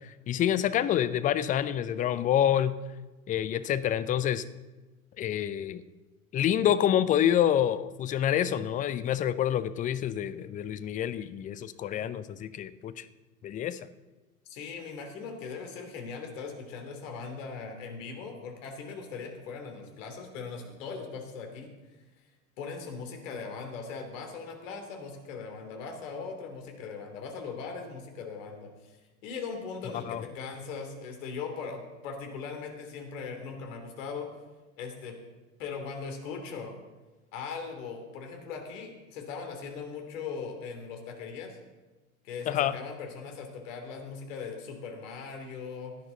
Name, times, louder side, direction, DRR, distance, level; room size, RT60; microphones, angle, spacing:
voice 1, 0.0-2.8 3.3-4.4 5.2-5.8 6.3-13.0 13.4-13.8 30.0-30.2 42.5-42.8, left 10 dB, 20° left, 14 dB, 0.5 m, -27 dB
voice 2, 14.5-21.7 22.6-34.3 34.8-35.2 35.6-36.7 37.3-41.6 42.2-45.9, left 5 dB, 60° left, 3 dB, 3.2 m, -39 dB
16.5 x 10.5 x 4.0 m, 1.2 s
figure-of-eight pair, 80°, 44 cm